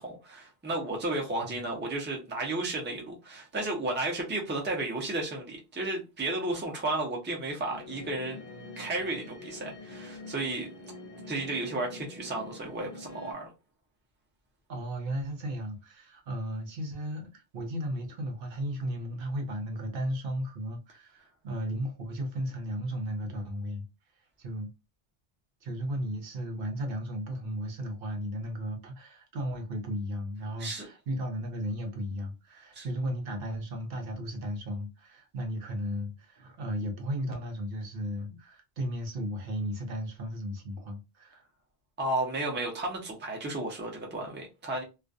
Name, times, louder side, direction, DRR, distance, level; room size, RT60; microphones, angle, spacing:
voice 1, 0.0-8.4 8.8-10.7 11.3-13.5 30.6-30.9 32.7-32.9 42.0-44.8, right 2 dB, 15° right, 0.5 m, -33 dB
sound 1, 7.7-13.3, left 2 dB, 60° left, 0.8 m, -46 dB
voice 2, 14.7-23.8 24.4-24.7 25.6-41.4, equal, 65° right, 0.8 m, -35 dB
2.4 x 2.2 x 2.5 m
omnidirectional pair, 1.0 m